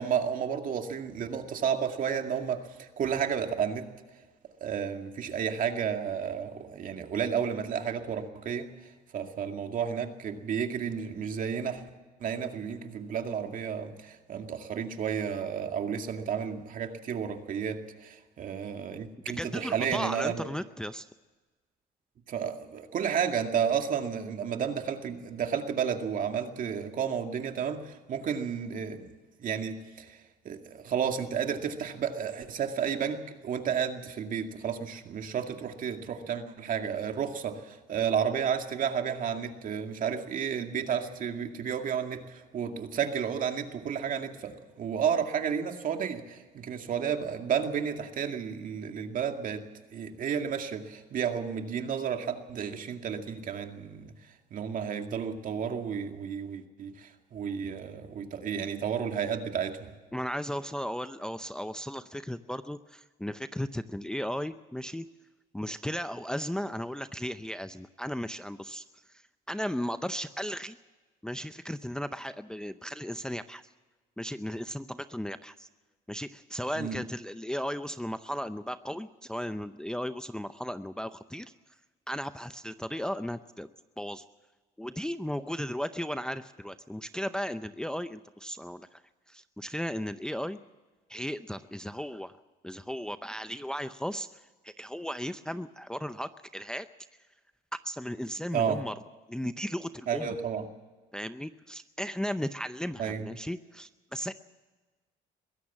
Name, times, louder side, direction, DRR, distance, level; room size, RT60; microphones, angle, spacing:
voice 1, 0.0-3.9 4.6-8.7 9.1-11.8 12.2-20.5 22.3-29.1 29.4-30.2 30.4-49.6 49.9-54.1 54.5-59.9 76.8-77.0 98.5-98.8 100.1-100.6 103.0-103.3, right 7 dB, 50° right, 5 dB, 2.2 m, -32 dB
voice 2, 19.4-21.1 60.1-65.0 65.5-68.8 69.5-70.8 71.2-73.6 74.2-75.7 76.1-81.5 82.1-83.7 84.0-84.2 84.8-89.0 89.3-90.6 91.1-92.3 92.6-96.9 97.8-98.9 99.3-100.4 101.1-104.3, equal, 5° left, 11 dB, 0.6 m, -35 dB
22.5 x 16.0 x 7.3 m, 1.3 s
cardioid pair, 110°, 17 cm